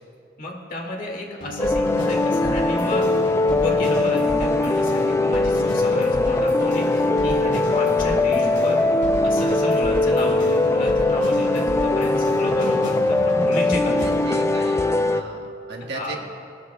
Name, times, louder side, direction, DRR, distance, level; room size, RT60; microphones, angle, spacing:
voice 1, 0.4-3.1 3.5-8.8 9.2-14.3 15.9-16.2, left 1 dB, 50° left, -1 dB, 1.9 m, -31 dB
sound 1, 1.4-14.3, equal, 75° left, 2.6 m, -32 dB
sound 2, 1.6-15.2, left 2 dB, 15° left, 0.4 m, -21 dB
voice 2, 14.0-16.2, right 3 dB, 70° right, 1 dB, 1.4 m, -36 dB
18.5 x 13.0 x 2.3 m, 2.6 s
head